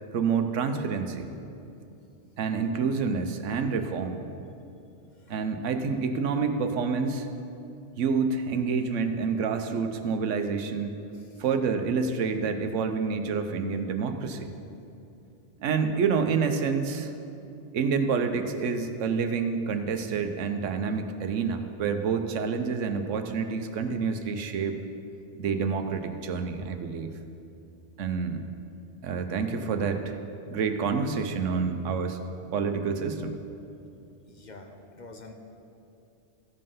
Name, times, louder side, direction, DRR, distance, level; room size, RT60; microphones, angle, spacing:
voice 1, 0.1-1.3 2.4-4.2 5.3-7.3 8.0-11.0 11.4-14.5 15.6-17.1 17.7-24.8 25.4-27.1 28.0-28.4 29.0-30.2 30.5-32.2 32.5-33.4, right 5 dB, 90° right, 7 dB, 1.1 m, -28 dB
voice 2, 34.3-35.3, left 3 dB, 45° left, 3 dB, 0.8 m, -46 dB
14.5 x 5.4 x 5.5 m, 2.7 s
omnidirectional pair, 1.2 m